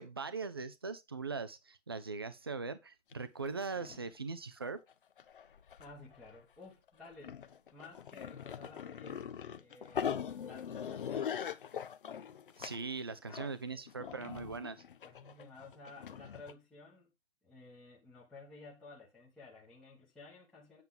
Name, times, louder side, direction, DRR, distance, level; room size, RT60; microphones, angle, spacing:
voice 1, 0.0-4.8 12.6-14.8, right 4 dB, 20° right, 0.4 m, -40 dB
sound 1, 3.1-3.2 3.5-4.1 4.6-4.9 5.2-6.4 6.9-16.5, left 8 dB, 45° left, 0.7 m, -42 dB
voice 2, 5.8-7.4 7.7-9.3 9.6-11.4 13.3-14.2 15.0-17.1 17.4-20.8, left 3 dB, ahead, 1.0 m, -54 dB
8.2 x 7.2 x 3.7 m
hypercardioid pair, 155°, 37 cm